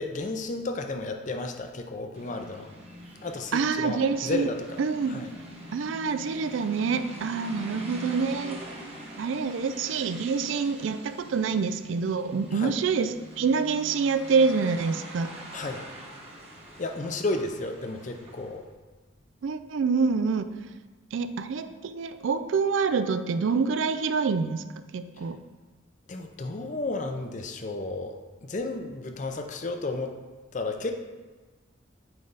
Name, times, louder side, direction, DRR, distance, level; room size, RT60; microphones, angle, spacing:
voice 1, 0.0-2.7 3.2-4.8 5.1-5.3 12.5-12.7 15.5-15.8 16.8-18.7 26.1-30.2 30.5-30.9, left 2 dB, 40° left, 5 dB, 0.5 m, -33 dB
sound 1, 2.1-18.6, right 1 dB, 30° right, 1.0 m, -44 dB
voice 2, 3.5-4.5 4.8-5.3 5.7-8.6 9.2-15.3 19.4-20.5 21.1-25.4, right 5 dB, 75° right, 11 dB, 0.4 m, -26 dB
8.9 x 3.3 x 4.0 m, 1.3 s
head